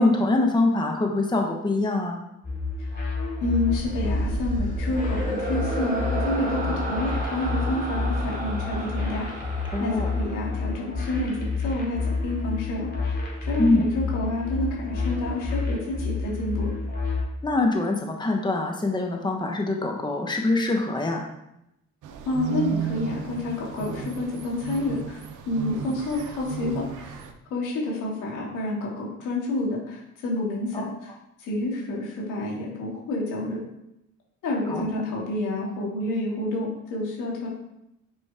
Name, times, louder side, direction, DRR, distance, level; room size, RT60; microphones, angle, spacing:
voice 1, 0.0-2.2 9.7-10.1 13.6-13.9 17.4-21.2 30.7-30.9 34.7-34.9, left 2 dB, 15° left, 1 dB, 1.2 m, -24 dB
sound 1, 2.4-17.2, left 3 dB, 35° left, 2.7 m, -29 dB
voice 2, 3.4-9.3 9.8-13.2 13.5-16.7 22.2-27.1 27.5-31.1 31.4-33.6 34.4-37.5, left 2 dB, 90° left, -3 dB, 2.7 m, -29 dB
sound 2, 3.7-11.1, right 2 dB, 25° right, 1.9 m, -33 dB
sound 3, 22.0-27.3, right 7 dB, 80° right, 0.9 m, -34 dB
8.3 x 5.1 x 3.7 m, 0.85 s
cardioid pair, 90°, 30 cm